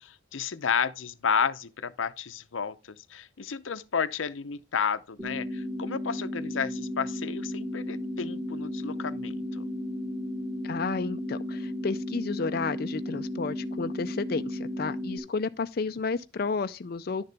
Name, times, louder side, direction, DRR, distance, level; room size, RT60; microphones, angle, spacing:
voice 1, 0.0-9.6, left 6 dB, 90° left, 0.7 m, -32 dB
sound 1, 5.2-15.2, left 1 dB, 5° right, 1.7 m, -34 dB
voice 2, 10.6-17.2, left 4 dB, 50° left, 0.5 m, -32 dB
10.5 x 6.7 x 3.4 m
head